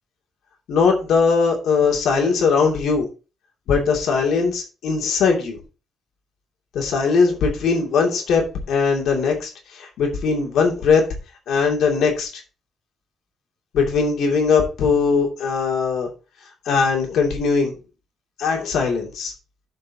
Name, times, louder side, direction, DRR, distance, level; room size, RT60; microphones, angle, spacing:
voice 1, 0.7-3.1 3.7-5.6 6.7-11.0 11.5-12.3 13.7-16.1 16.7-17.7 18.4-19.3, left 5 dB, 75° left, 1 dB, 2.6 m, -20 dB
12.5 x 5.3 x 2.8 m, 0.33 s
cardioid pair, 90°, 0 cm